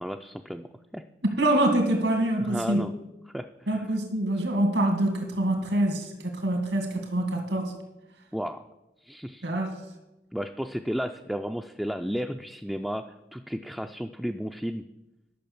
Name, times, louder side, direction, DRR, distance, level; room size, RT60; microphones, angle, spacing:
voice 1, 0.0-1.0 2.4-2.9 3.3-3.8 8.3-8.6 9.0-9.5 10.3-14.8, equal, ahead, 5 dB, 0.3 m, -33 dB
voice 2, 1.2-2.8 3.7-7.7 9.4-9.8, right 1 dB, 80° right, 3 dB, 2.3 m, -25 dB
12.0 x 6.3 x 7.0 m, 0.96 s
head